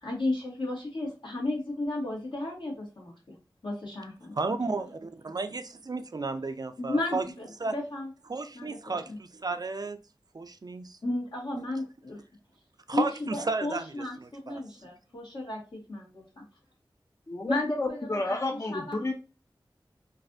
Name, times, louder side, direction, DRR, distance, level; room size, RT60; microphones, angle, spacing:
voice 1, 0.0-3.3 3.6-4.9 6.8-8.1 8.5-9.2 11.0-12.2 12.9-16.4 17.5-18.4 18.7-19.0, left 2 dB, 70° left, 1.6 m, -34 dB
voice 2, 4.4-7.2 7.6-7.7 8.3-9.0 9.4-10.0 10.3-10.8 12.9-13.1 13.5-13.8 14.5-14.6, right 3 dB, 50° right, 0.4 m, -32 dB
voice 3, 17.3-19.1, left 2 dB, 35° left, 0.5 m, -31 dB
3.2 x 2.5 x 2.5 m
wide cardioid pair, 55°, 8 cm